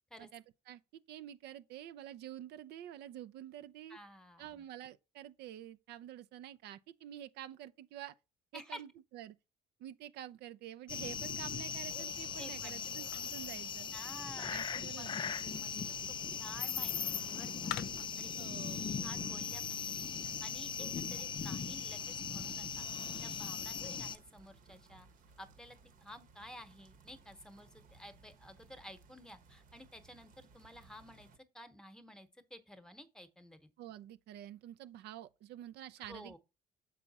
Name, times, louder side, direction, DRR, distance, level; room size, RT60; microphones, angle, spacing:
voice 1, 0.2-4.0 4.4-8.1 8.5-9.4 9.8-13.9 14.5-15.4 18.4-18.9 33.8-36.4, right 12 dB, 75° right, 0.5 m, -48 dB
voice 2, 3.9-4.7 8.5-8.8 12.4-13.0 13.9-14.6 15.0-15.1 15.6-15.7 16.1-17.7 18.2-18.3 18.7-22.9 23.2-25.1 25.4-31.3 31.5-33.7 36.0-36.4, equal, 5° left, 1.0 m, -53 dB
sound 1, 10.9-24.2, left 6 dB, 30° left, 0.4 m, -39 dB
sound 2, 11.5-18.4, left 12 dB, 80° left, 0.6 m, -51 dB
sound 3, 15.5-31.4, right 4 dB, 55° right, 1.1 m, -62 dB
6.8 x 4.8 x 4.1 m
cardioid pair, 110°, 17 cm